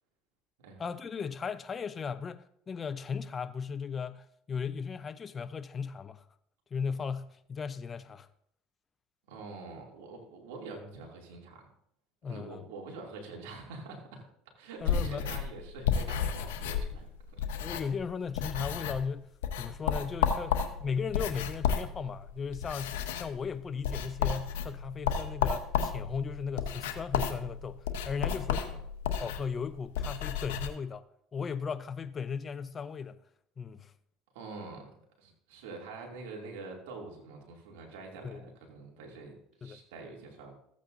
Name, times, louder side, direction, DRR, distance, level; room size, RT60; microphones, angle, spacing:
voice 1, 0.8-6.3 6.7-8.3 12.2-12.6 14.8-15.3 17.6-28.6 29.2-31.1 31.3-33.2 33.6-33.9 38.2-38.4 39.6-39.8, left 6 dB, 30° left, 0.6 m, -37 dB
voice 2, 9.3-11.7 12.3-14.2 14.6-17.6 28.2-28.8 34.3-34.9 35.2-40.5, right 3 dB, 85° right, 2.5 m, -45 dB
sound 1, 14.8-18.1 18.3-19.1 19.4-30.7, left 7 dB, 90° left, 0.9 m, -32 dB
14.0 x 8.4 x 2.6 m
supercardioid pair, 95°, 0 cm